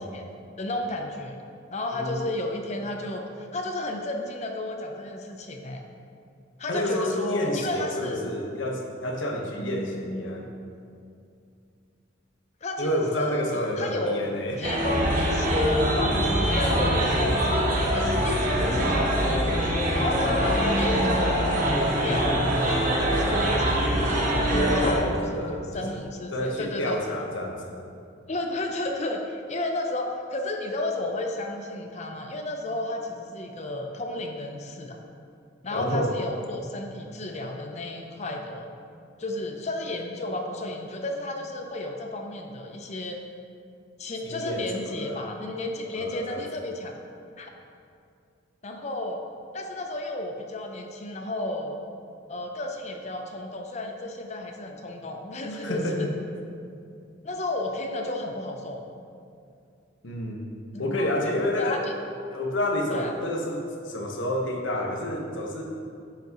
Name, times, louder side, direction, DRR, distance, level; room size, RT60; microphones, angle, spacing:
voice 1, 0.6-1.4 1.7-5.8 6.6-8.3 9.5-10.3 12.6-14.2 14.6-19.4 19.9-24.0 24.5-27.2 28.3-35.0 35.6-38.7 39.2-43.2 44.0-47.0 47.4-47.5 48.6-49.2 49.5-51.8 52.3-56.1 57.2-58.8 60.7-61.9 62.9-63.1, left 2 dB, 35° left, 3 dB, 0.7 m, -32 dB
voice 2, 1.9-2.2 6.7-10.5 12.8-14.6 24.7-26.0 26.3-27.6 35.7-36.1 44.2-45.2 45.9-46.4 55.5-56.1 60.0-60.5 60.8-61.8 62.3-65.7, left 1 dB, 75° left, 0 dB, 1.2 m, -29 dB
sound 1, 14.6-24.9, equal, 45° right, 1.4 m, -23 dB
10.0 x 8.1 x 3.0 m, 2.4 s
head